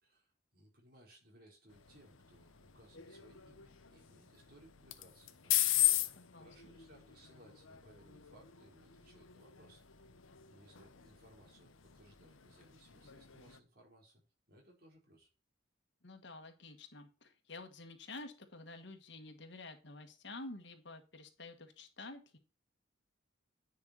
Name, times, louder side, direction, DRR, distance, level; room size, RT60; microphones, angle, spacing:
voice 1, 0.0-5.8 6.3-9.8 10.5-14.2 14.5-15.3, right 1 dB, 50° right, 0 dB, 4.2 m, -63 dB
sound 1, 1.7-13.6, left 14 dB, 85° left, 1.0 m, -39 dB
voice 2, 6.1-6.7 16.0-22.4, left 2 dB, 60° left, 6 dB, 1.6 m, -50 dB
10.0 x 5.7 x 4.1 m, 0.32 s
head